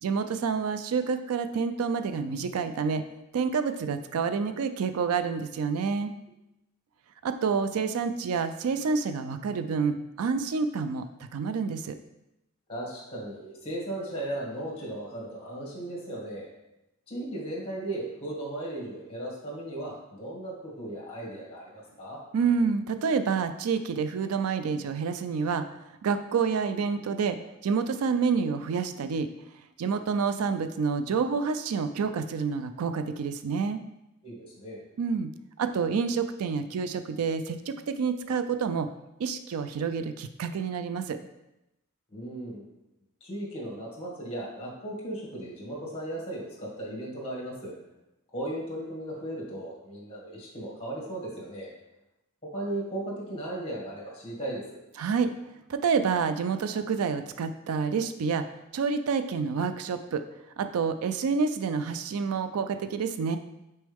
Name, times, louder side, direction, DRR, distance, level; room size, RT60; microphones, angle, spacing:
voice 1, 0.0-3.0 3.3-6.1 7.2-11.1 11.3-12.0 22.3-29.3 29.8-33.8 35.0-35.3 35.6-38.9 39.2-41.2 55.0-55.3 55.7-58.5 58.7-60.2 60.6-63.4, right 5 dB, 70° right, 10 dB, 0.4 m, -28 dB
voice 2, 12.7-16.5 17.1-22.2 34.2-34.8 42.1-42.8 43.2-47.7 48.3-51.7 52.5-54.8, right 1 dB, 25° left, -3 dB, 2.0 m, -36 dB
6.2 x 4.4 x 3.5 m, 0.91 s
head